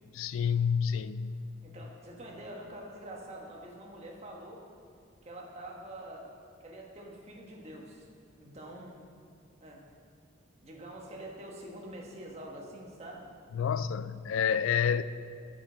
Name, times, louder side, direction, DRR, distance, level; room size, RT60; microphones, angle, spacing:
voice 1, 0.1-1.5 13.5-15.0, left 7 dB, 70° left, 0.3 m, -29 dB
voice 2, 1.6-4.6 5.2-6.3 6.6-8.1 8.4-9.0 9.6-9.8 10.6-13.3, right 1 dB, 30° right, 1.4 m, -45 dB
11.0 x 7.2 x 5.1 m
head